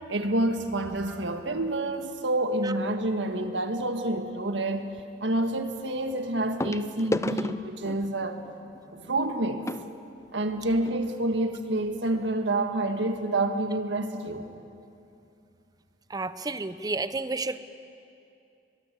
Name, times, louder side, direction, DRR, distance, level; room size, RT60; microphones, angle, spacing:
voice 1, 0.1-8.4 8.9-9.6 10.3-14.5, right 1 dB, 85° right, 6 dB, 1.7 m, -28 dB
sound 1, 3.0-3.3 5.0-5.1 6.6-11.0 11.8-11.9 12.1-12.3 12.8-12.9, left 1 dB, 15° left, 0.5 m, -35 dB
voice 2, 16.1-17.6, right 3 dB, 20° right, 12 dB, 0.7 m, -31 dB
23.0 x 22.5 x 8.3 m, 2.6 s
head